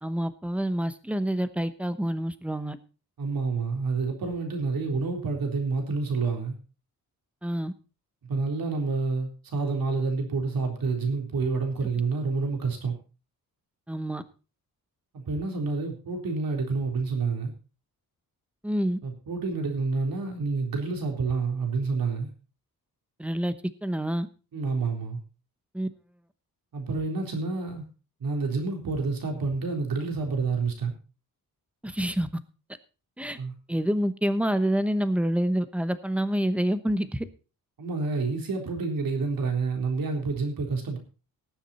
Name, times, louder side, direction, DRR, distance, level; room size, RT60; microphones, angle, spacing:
voice 1, 0.0-2.8 7.4-7.7 13.9-14.2 18.6-19.0 23.2-23.5 23.8-24.3 25.7-25.9 31.8-32.3 33.2-33.4 33.7-37.3, equal, 5° right, 12 dB, 0.9 m, -27 dB
voice 2, 3.2-6.6 8.3-13.0 15.1-17.5 19.0-22.3 24.5-25.2 26.7-27.8 28.2-30.9 33.4-33.5 37.8-41.0, right 4 dB, 65° right, 3 dB, 3.8 m, -28 dB
19.0 x 7.3 x 4.2 m, 0.34 s
wide cardioid pair, 135°, 37 cm